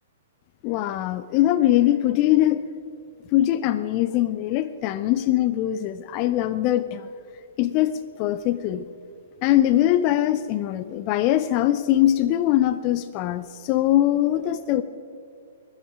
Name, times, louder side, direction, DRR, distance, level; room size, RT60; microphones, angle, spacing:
voice 1, 0.6-2.6 3.3-7.1 7.6-7.9 8.2-8.8 9.4-14.8, left 13 dB, 35° left, 13 dB, 0.5 m, -22 dB
21.5 x 8.9 x 4.9 m, 2.4 s
figure-of-eight pair, 120°, 0 cm